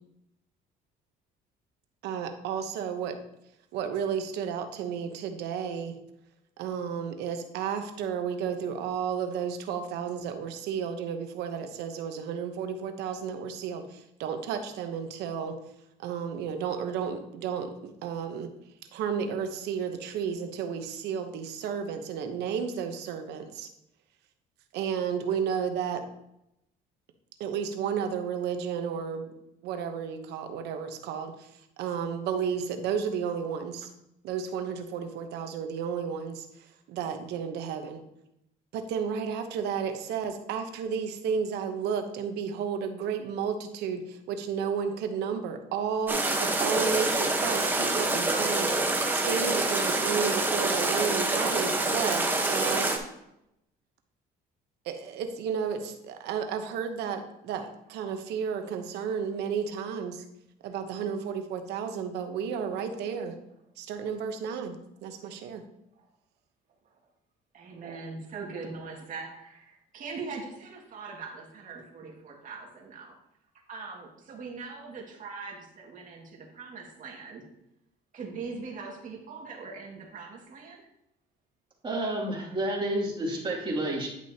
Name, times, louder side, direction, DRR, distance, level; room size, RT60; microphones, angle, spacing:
voice 1, 2.0-3.2 3.7-6.0 6.6-15.6 16.0-18.5 18.9-23.7 24.7-26.1 27.4-29.4 29.6-31.5 31.8-33.9 34.2-36.5 36.9-38.0 38.7-52.9 54.8-60.2 60.6-63.4 63.8-65.6, right 7 dB, 85° right, 7 dB, 1.0 m, -32 dB
sound 1, 46.1-53.0, right 2 dB, 10° right, 1.1 m, -26 dB
voice 2, 67.5-73.2 73.7-77.4 78.1-80.8, right 4 dB, 50° right, 0 dB, 2.0 m, -41 dB
voice 3, 81.8-84.1, right 1 dB, 30° right, -3 dB, 2.7 m, -30 dB
10.5 x 6.1 x 2.9 m, 0.83 s
cardioid pair, 110°, 17 cm